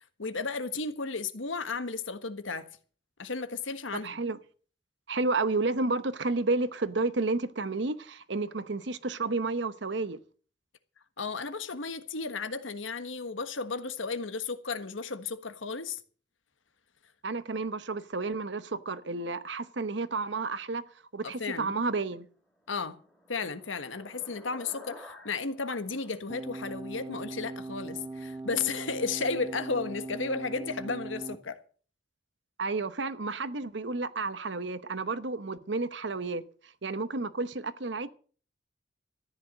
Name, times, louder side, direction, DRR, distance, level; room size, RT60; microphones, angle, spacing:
voice 1, 0.2-2.7 3.2-4.2 11.2-16.0 21.2-21.7 22.7-23.0 23.3-31.6, left 4 dB, 90° left, 1.5 m, -34 dB
voice 2, 4.0-4.4 5.1-10.2 17.2-20.8 21.1-22.3 32.6-36.4 36.8-38.1, right 3 dB, 65° right, 0.9 m, -31 dB
sound 1, 22.4-27.2, left 1 dB, 5° left, 2.8 m, -53 dB
sound 2, 26.3-31.4, right 2 dB, 15° right, 1.0 m, -40 dB
14.0 x 10.5 x 6.5 m
head